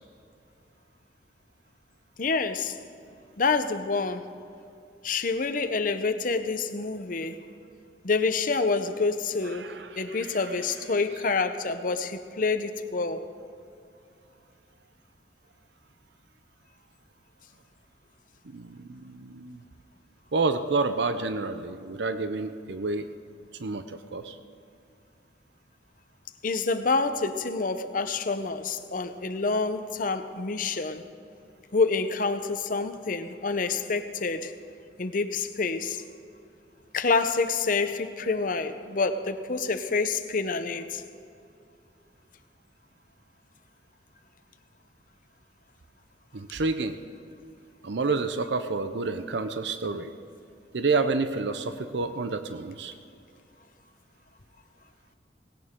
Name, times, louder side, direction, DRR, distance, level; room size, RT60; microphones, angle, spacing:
voice 1, 2.2-2.8 3.4-4.3 5.0-7.4 8.0-9.7 10.0-13.2 26.4-31.0 31.7-34.5 35.0-36.0 36.9-41.0, left 4 dB, 45° left, 9 dB, 0.7 m, -27 dB
voice 2, 9.6-10.4 18.4-19.6 20.3-23.1 23.6-24.4 46.3-47.0 47.8-50.1 50.7-52.9, right 3 dB, 70° right, 9 dB, 0.6 m, -29 dB
18.5 x 17.5 x 3.7 m, 2.5 s
head